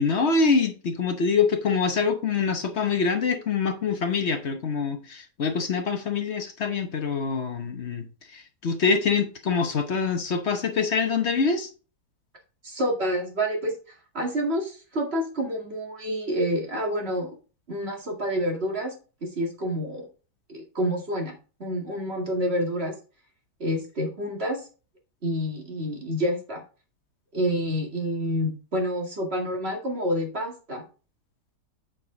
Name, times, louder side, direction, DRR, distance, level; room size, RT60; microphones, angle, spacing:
voice 1, 0.0-8.1 8.3-11.7, left 5 dB, 50° left, 1.0 m, -25 dB
voice 2, 12.6-13.7 14.1-17.3 17.7-18.9 19.2-20.1 20.5-21.3 21.6-22.9 23.6-24.6 25.2-26.6 27.3-30.8, equal, 35° right, 2.3 m, -28 dB
8.8 x 4.8 x 3.9 m
omnidirectional pair, 1.9 m